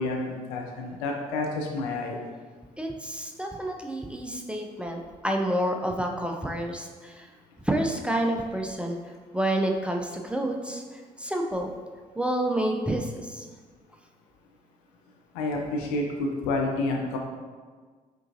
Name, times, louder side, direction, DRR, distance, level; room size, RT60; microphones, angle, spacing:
voice 1, 0.0-2.2 15.3-17.2, left 2 dB, 70° left, 1 dB, 0.6 m, -29 dB
voice 2, 2.8-7.3 7.6-9.0 9.3-10.8 11.2-11.7 12.2-13.5, right 1 dB, 5° right, 2 dB, 0.5 m, -29 dB
4.6 x 3.7 x 2.7 m, 1.5 s
figure-of-eight pair, 45°, 20 cm